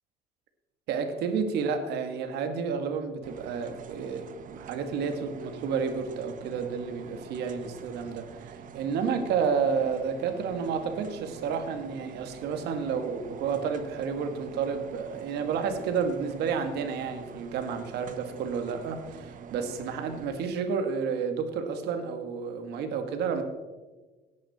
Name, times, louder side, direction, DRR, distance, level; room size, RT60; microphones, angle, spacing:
voice 1, 0.9-23.4, right 6 dB, 80° right, 7 dB, 2.0 m, -31 dB
sound 1, 3.2-20.3, right 7 dB, 50° right, 1.1 m, -46 dB
17.0 x 10.5 x 4.3 m, 1.3 s
cardioid pair, 110°, 17 cm